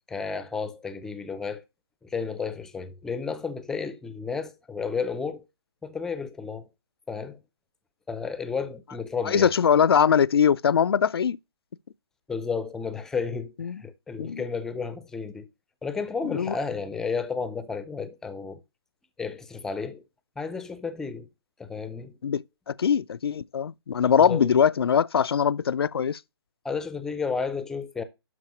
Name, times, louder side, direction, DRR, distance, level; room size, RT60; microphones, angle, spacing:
voice 1, 0.1-1.6 2.0-5.4 5.8-6.7 7.1-7.4 8.1-9.5 12.3-15.5 15.8-18.6 19.2-20.0 20.4-21.3 21.6-22.2 24.2-24.5 26.6-28.0, left 5 dB, 5° left, 0.5 m, -32 dB
voice 2, 9.2-11.4 13.6-13.8 14.2-14.4 16.3-16.5 22.2-26.2, left 7 dB, 70° left, 0.4 m, -22 dB
12.0 x 4.6 x 3.0 m
figure-of-eight pair, 145°, 13 cm